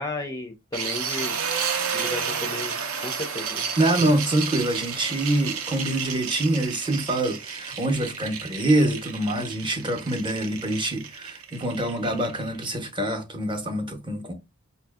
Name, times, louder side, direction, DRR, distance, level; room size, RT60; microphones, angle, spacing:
voice 1, 0.0-1.4 1.9-2.7 3.0-3.6, left 2 dB, 15° left, 0.4 m, -33 dB
sound 1, 0.7-12.7, right 6 dB, 70° right, 0.6 m, -32 dB
voice 2, 3.8-14.3, right 1 dB, 25° right, 0.6 m, -25 dB
4.6 x 2.6 x 2.3 m
head